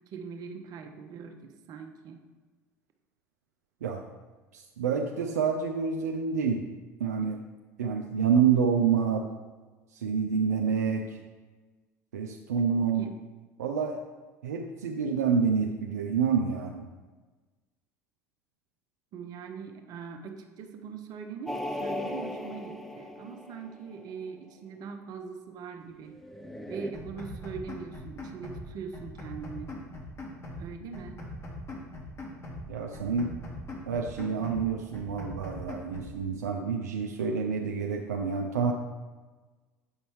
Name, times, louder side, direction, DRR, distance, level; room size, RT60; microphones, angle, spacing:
voice 1, 0.1-2.2 13.0-13.1 19.1-26.2 26.7-29.7 30.6-31.2, right 6 dB, 50° right, 5 dB, 0.7 m, -41 dB
voice 2, 4.5-6.7 7.0-7.4 7.8-9.3 9.9-11.2 12.1-13.1 13.6-14.0 14.4-16.9 32.7-33.3 33.9-38.7, right 6 dB, 75° right, 2 dB, 0.4 m, -28 dB
sound 1, 21.5-24.1 26.2-26.9, left 1 dB, 5° left, 0.4 m, -37 dB
sound 2, 26.9-28.7 28.9-30.7 30.9-32.7 32.9-34.7 34.9-36.2, left 1 dB, 30° left, 1.4 m, -41 dB
8.0 x 5.3 x 3.1 m, 1.3 s
figure-of-eight pair, 70°, 9 cm